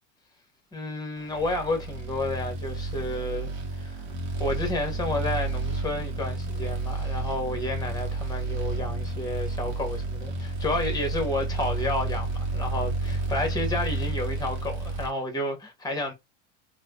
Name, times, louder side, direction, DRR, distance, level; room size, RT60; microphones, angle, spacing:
voice 1, 0.7-3.5 3.8-4.0 4.4-16.1, left 2 dB, 10° left, 1.2 m, -31 dB
sound 1, 1.3-15.1, right 2 dB, 60° right, 0.9 m, -31 dB
3.1 x 2.2 x 2.3 m
hypercardioid pair, 80°, 37 cm